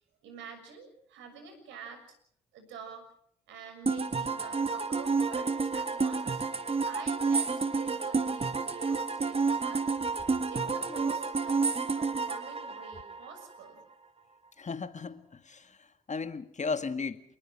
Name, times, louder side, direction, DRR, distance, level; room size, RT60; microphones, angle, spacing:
voice 1, 0.2-2.0 2.5-3.1 3.5-6.4 6.8-9.9 10.5-11.6 11.9-13.8, right 5 dB, 75° right, 6.6 m, -47 dB
sound 1, 3.9-13.6, right 4 dB, 30° right, 2.3 m, -30 dB
voice 2, 14.6-17.2, left 4 dB, 35° left, 2.0 m, -36 dB
28.0 x 19.5 x 6.1 m
hypercardioid pair, 45°, 20 cm